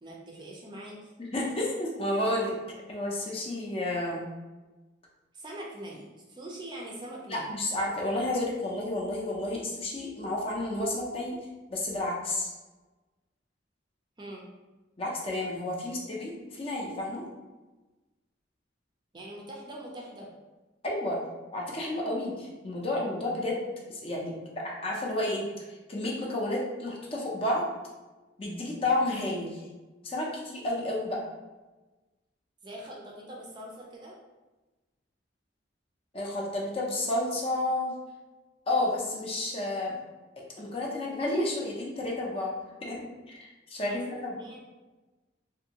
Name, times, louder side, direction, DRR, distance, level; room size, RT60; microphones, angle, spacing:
voice 1, 0.0-1.1 5.3-7.5 14.2-14.5 19.1-20.3 32.6-34.2 43.9-44.6, right 1 dB, 25° right, -2 dB, 0.4 m, -43 dB
voice 2, 1.2-2.5 2.9-4.2 7.3-11.4 11.7-12.5 15.0-17.2 20.8-21.2 21.5-24.3 24.6-27.7 28.4-29.6 30.0-31.2 36.1-38.0 38.7-40.0 40.6-43.0 43.3-44.3, left 1 dB, 30° left, -2 dB, 0.5 m, -31 dB
2.6 x 2.6 x 2.8 m, 1.2 s
head